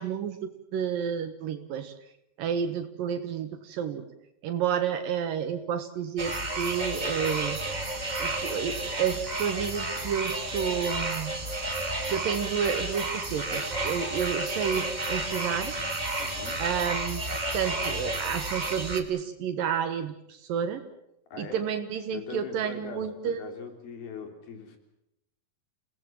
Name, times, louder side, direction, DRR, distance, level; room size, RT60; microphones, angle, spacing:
voice 1, 0.0-1.9 2.4-4.1 4.4-7.6 8.2-11.3 12.1-15.7 16.6-17.2 17.5-20.8 21.4-23.4, right 8 dB, 70° right, 8 dB, 2.9 m, -30 dB
sound 1, 6.2-19.0, right 2 dB, 20° right, 1.4 m, -31 dB
voice 2, 16.2-16.6 21.3-21.7 22.1-24.8, left 5 dB, 85° left, 5 dB, 5.2 m, -41 dB
29.5 x 18.5 x 7.5 m, 0.82 s
omnidirectional pair, 4.2 m